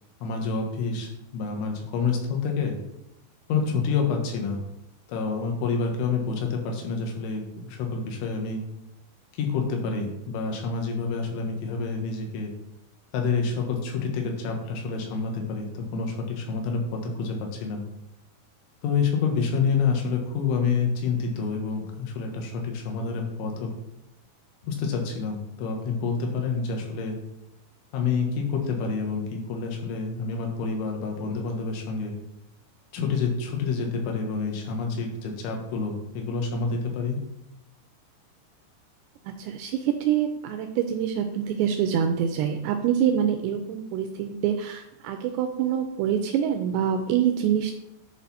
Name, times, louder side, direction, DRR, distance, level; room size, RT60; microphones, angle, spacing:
voice 1, 0.2-2.8 3.5-4.6 5.1-8.6 9.3-12.5 13.1-17.8 18.8-23.7 24.6-27.2 27.9-32.2 32.9-37.2, left 5 dB, 85° left, 2 dB, 3.9 m, -28 dB
voice 2, 39.4-47.7, right 9 dB, 85° right, 6 dB, 2.5 m, -25 dB
10.5 x 4.7 x 4.2 m, 0.85 s
omnidirectional pair, 5.4 m